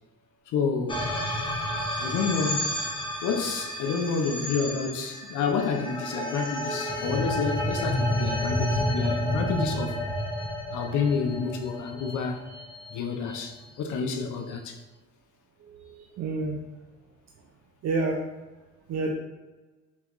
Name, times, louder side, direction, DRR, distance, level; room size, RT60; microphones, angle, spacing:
voice 1, 0.5-1.1 2.0-2.8 3.2-10.0 10.7-12.4 12.9-14.8, left 5 dB, 80° left, 4 dB, 0.6 m, -29 dB
sound 1, 0.9-13.3, left 1 dB, 15° left, 0.7 m, -30 dB
voice 2, 15.6-16.6 17.8-18.2 18.9-19.1, right 3 dB, 60° right, 1 dB, 0.5 m, -29 dB
5.5 x 2.4 x 3.0 m, 1.2 s
cardioid pair, 90°, 30 cm